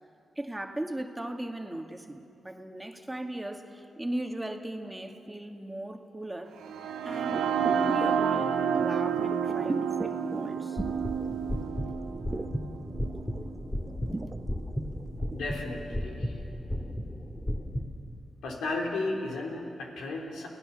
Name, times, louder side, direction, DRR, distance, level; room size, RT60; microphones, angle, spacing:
voice 1, 0.4-6.5 7.0-7.4 7.8-10.8 13.0-13.1, right 1 dB, 15° right, 4 dB, 2.1 m, -37 dB
sound 1, 6.6-14.5, right 7 dB, 90° right, 1.4 m, -30 dB
sound 2, 7.3-11.7 12.0-15.5 15.9-16.0, right 2 dB, 30° right, 0.9 m, -38 dB
sound 3, 10.8-17.8, equal, 15° left, 3.2 m, -35 dB
voice 2, 15.3-16.4 18.4-20.5, left 2 dB, 80° left, 0 dB, 3.5 m, -34 dB
30.0 x 17.0 x 7.1 m, 2.7 s
supercardioid pair, 40°, 0 cm